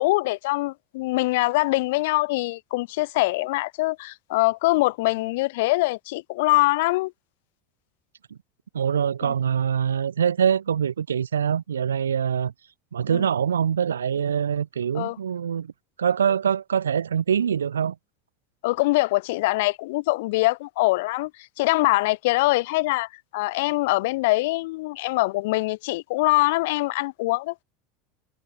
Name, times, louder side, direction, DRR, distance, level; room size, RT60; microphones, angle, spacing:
voice 1, 0.0-7.1 9.2-9.3 13.1-13.3 14.9-15.2 18.6-21.3 21.6-27.6, left 21 dB, 60° left, 0.5 m, -23 dB
voice 2, 8.7-12.5 12.9-15.7 16.0-18.0, right 8 dB, 75° right, 0.6 m, -24 dB
figure-of-eight pair, 75°, 0 cm